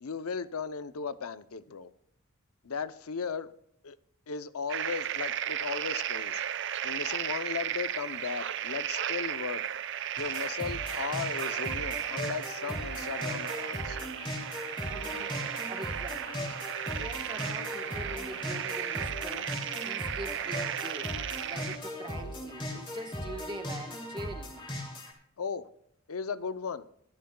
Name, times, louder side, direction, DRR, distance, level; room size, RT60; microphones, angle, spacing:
voice 1, 0.0-1.9 2.6-3.5 3.8-4.0 4.3-6.4 6.8-9.6 10.2-14.0 25.4-25.7 26.1-26.8, left 5 dB, 85° left, 0.6 m, -36 dB
sound 1, 4.7-21.8, right 10 dB, 55° right, 0.6 m, -35 dB
sound 2, 10.2-25.1, left 1 dB, 20° left, 2.9 m, -38 dB
voice 2, 14.9-24.5, right 1 dB, 20° right, 1.2 m, -44 dB
22.5 x 11.5 x 2.3 m
head